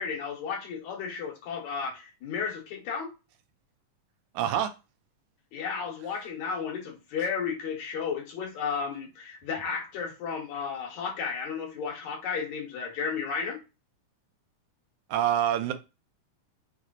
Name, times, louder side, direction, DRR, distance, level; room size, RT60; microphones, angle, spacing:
voice 1, 0.0-3.1 5.5-13.6, left 6 dB, 70° left, 2.4 m, -33 dB
voice 2, 4.3-4.7 15.1-15.7, right 10 dB, 80° right, 1.9 m, -26 dB
6.1 x 2.1 x 3.8 m
omnidirectional pair, 3.7 m